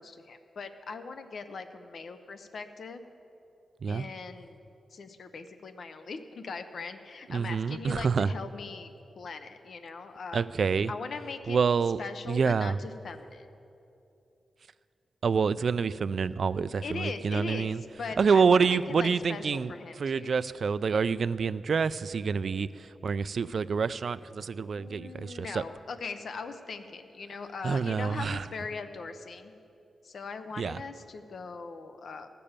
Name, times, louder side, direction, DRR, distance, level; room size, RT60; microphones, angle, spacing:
voice 1, 0.0-3.0 3.9-4.6 4.9-10.4 10.9-11.6 12.0-13.5 16.8-17.7 18.0-20.3 24.8-29.5 30.0-32.3, left 4 dB, 55° left, 9 dB, 0.7 m, -40 dB
voice 2, 7.3-8.3 10.3-10.9 11.5-12.0 12.3-12.8 15.2-17.8 18.2-25.6 27.6-28.5 30.6-30.8, right 5 dB, 50° right, 16 dB, 0.3 m, -27 dB
15.0 x 6.8 x 8.8 m, 2.7 s
wide cardioid pair, 150°, 0 cm